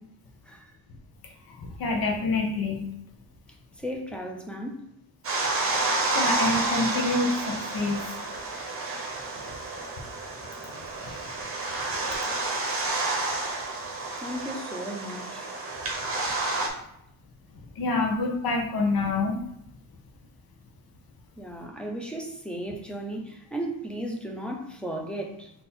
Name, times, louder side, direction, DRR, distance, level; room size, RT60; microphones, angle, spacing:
voice 1, 1.5-2.8 6.1-8.0 17.7-19.4, left 3 dB, 65° left, 1 dB, 0.8 m, -26 dB
voice 2, 3.7-4.8 14.2-15.5 21.4-25.5, right 1 dB, 5° left, 1 dB, 0.6 m, -35 dB
sound 1, 5.2-16.7, right 2 dB, 35° right, 0.8 m, -30 dB
3.7 x 2.8 x 4.2 m, 0.77 s
wide cardioid pair, 145°, 38 cm